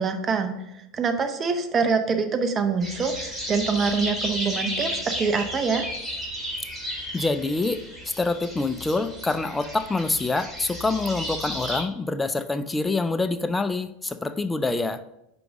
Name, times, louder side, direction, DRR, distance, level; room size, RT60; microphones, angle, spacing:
voice 1, 0.0-5.9, right 5 dB, 30° right, 7 dB, 0.7 m, -25 dB
sound 1, 2.8-11.8, equal, ahead, 2.1 m, -33 dB
voice 2, 7.1-15.0, left 3 dB, 15° left, 11 dB, 0.4 m, -26 dB
5.2 x 4.6 x 4.8 m, 0.86 s
hypercardioid pair, 85°, 0 cm